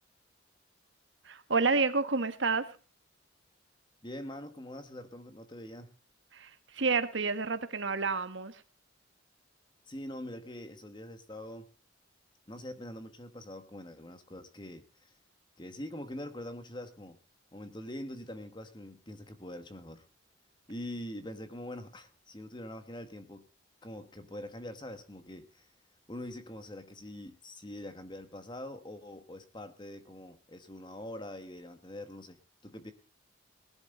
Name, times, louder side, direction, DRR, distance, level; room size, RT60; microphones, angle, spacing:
voice 1, 1.3-2.7 6.3-8.5, right 4 dB, 75° right, 10 dB, 1.4 m, -29 dB
voice 2, 4.0-5.9 9.9-11.7 12.5-15.1 15.6-17.2 17.5-20.0 20.7-23.5 23.8-25.7 26.1-32.9, left 1 dB, 25° left, 9 dB, 1.5 m, -44 dB
19.0 x 11.5 x 3.9 m, 0.35 s
head